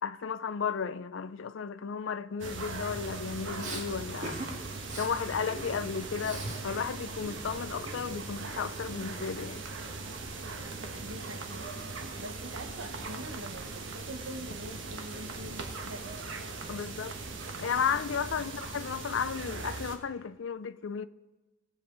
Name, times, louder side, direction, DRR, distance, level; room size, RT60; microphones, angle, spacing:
voice 1, 0.0-4.4 4.9-9.7 16.7-17.2 17.6-21.1, left 6 dB, 65° left, 0.4 m, -34 dB
sound 1, 2.4-20.0, right 3 dB, 65° right, 1.3 m, -40 dB
Respiratory sounds, 3.6-3.8 4.2-4.5 4.8-5.1 5.5-6.6 6.9-8.3, right 2 dB, 35° right, 1.8 m, -42 dB
voice 2, 11.0-16.2 18.4-18.6, right 1 dB, 80° right, 1.2 m, -45 dB
19.0 x 7.5 x 3.9 m
head